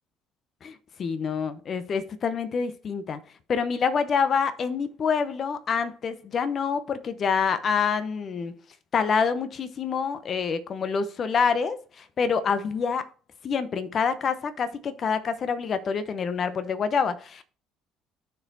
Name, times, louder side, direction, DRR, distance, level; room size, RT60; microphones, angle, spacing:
voice 1, 0.6-3.2 3.5-8.5 8.9-13.1 13.4-17.4, left 6 dB, 45° left, 0.7 m, -27 dB
13.0 x 4.6 x 2.6 m
hypercardioid pair, 55°, 0 cm